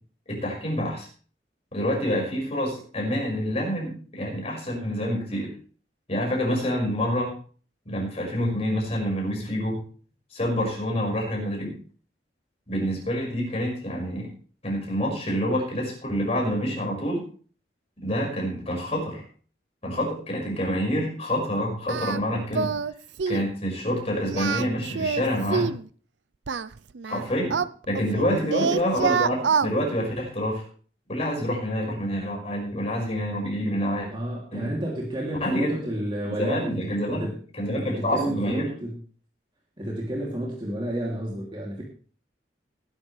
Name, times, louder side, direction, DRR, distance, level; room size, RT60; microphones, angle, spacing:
voice 1, 0.3-1.1 1.7-5.5 6.1-7.3 7.9-9.8 10.3-11.8 12.7-14.3 14.6-17.2 18.0-19.2 19.8-22.8 23.3-25.7 27.1-27.6 27.9-30.7 31.1-34.1 34.5-34.7 35.4-35.8 36.4-37.3 37.6-38.7, equal, 35° left, -1 dB, 5.6 m, -27 dB
Singing, 21.9-22.2 22.5-22.9 23.2-23.5 24.2-25.8 26.5-28.2 28.5-29.7, right 5 dB, 85° right, 0.6 m, -26 dB
voice 2, 34.1-36.8 37.1-37.4 37.8-39.0 39.8-41.8, right 1 dB, 25° right, -3 dB, 2.9 m, -31 dB
18.5 x 11.0 x 3.3 m, 0.41 s
head